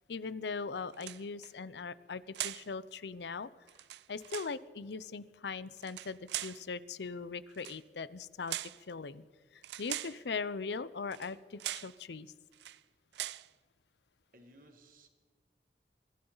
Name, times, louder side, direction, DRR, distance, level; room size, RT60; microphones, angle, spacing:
voice 1, 0.1-3.5 4.1-8.6 8.9-9.2 9.5-12.3, left 4 dB, 80° left, 17 dB, 0.6 m, -40 dB
sound 1, 0.9-1.5 2.3-2.7 3.7-4.6 5.8-6.6 7.5-7.8 8.5-8.8 9.6-10.2 11.1-11.3 11.6-12.0 12.5-12.8 13.1-13.5, right 14 dB, 80° right, 0.4 m, -41 dB
voice 2, 14.3-15.1, right 1 dB, 50° right, 5 dB, 1.9 m, -59 dB
23.5 x 15.0 x 4.0 m, 1.5 s
head